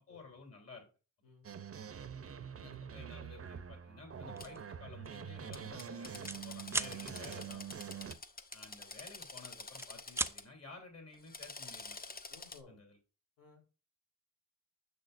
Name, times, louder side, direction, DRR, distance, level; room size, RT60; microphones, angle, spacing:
voice 1, 0.1-0.9 2.6-7.9 8.5-12.2 12.7-13.0, left 3 dB, 45° left, 1 dB, 3.2 m, -53 dB
sound 1, 1.4-8.1, right 7 dB, 45° right, 0.7 m, -45 dB
Drill, 4.4-4.5 5.5-10.4 11.1-12.6, left 3 dB, 25° left, 0.8 m, -48 dB
sound 2, 4.4-4.6 5.0-5.2 5.5-6.4 6.7-7.0 8.5-9.3 9.6-10.4, right 2 dB, 10° right, 0.4 m, -37 dB
voice 2, 12.3-12.8 13.4-13.6, left 4 dB, 80° left, -1 dB, 3.5 m, -59 dB
6.6 x 6.5 x 2.6 m, 0.33 s
cardioid pair, 85°, 33 cm